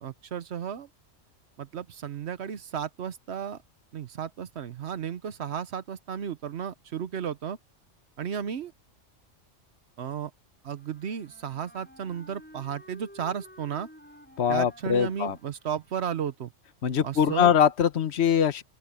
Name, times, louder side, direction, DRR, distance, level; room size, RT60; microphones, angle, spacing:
voice 1, 0.0-0.9 1.6-3.6 3.9-7.6 8.2-8.7 10.0-10.3 10.6-13.9 14.5-16.5 17.0-17.5, right 8 dB, 65° right, 1.0 m, -34 dB
Wind instrument woodwind instrument, 10.7-16.3, equal, 10° left, 7.0 m, -52 dB
voice 2, 14.4-15.4 16.8-18.6, left 8 dB, 60° left, 1.3 m, -23 dB
open air
omnidirectional pair, 1.3 m